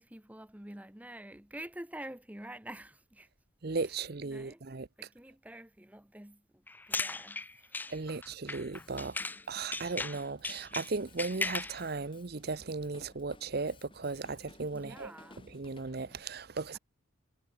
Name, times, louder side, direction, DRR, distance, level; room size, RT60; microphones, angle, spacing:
voice 1, 0.0-3.3 3.9-4.6 5.0-7.8 14.7-15.4 16.7-16.8, right 1 dB, 5° right, 0.9 m, -48 dB
voice 2, 3.6-4.9 7.9-9.2 9.5-15.1 15.5-16.8, right 4 dB, 50° right, 0.7 m, -36 dB
sound 1, 6.7-9.4 9.7-11.8, left 3 dB, 10° left, 0.4 m, -37 dB
Drum kit, 8.7-16.2, left 2 dB, 25° left, 2.5 m, -58 dB
head